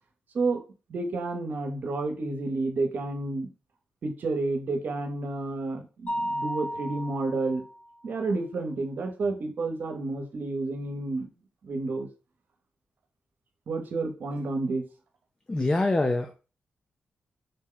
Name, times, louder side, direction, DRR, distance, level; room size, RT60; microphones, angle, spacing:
voice 1, 0.9-3.5 4.0-7.6 8.0-11.3 11.6-12.1 13.7-14.8, right 3 dB, 70° right, 4 dB, 0.8 m, -30 dB
Mallet percussion, 6.1-7.9, equal, 45° left, 1.1 m, -33 dB
voice 2, 15.5-16.3, left 2 dB, 25° left, 6 dB, 0.4 m, -24 dB
3.9 x 2.2 x 3.7 m, 0.33 s
cardioid pair, 65°, 3 cm